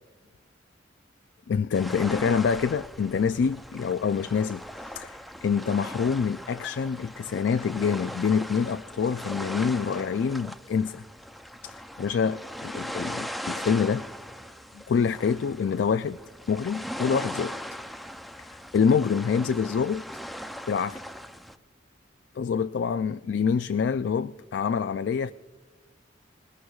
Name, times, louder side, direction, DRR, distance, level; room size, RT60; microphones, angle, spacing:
voice 1, 1.5-11.0 11.6-14.1 14.7-16.2 16.5-17.6 18.4-20.0 20.7-21.0 22.4-25.3, left 6 dB, 65° left, 0.3 m, -26 dB
sound 1, 1.7-21.6, equal, ahead, 0.4 m, -39 dB
20.5 x 20.0 x 2.3 m
head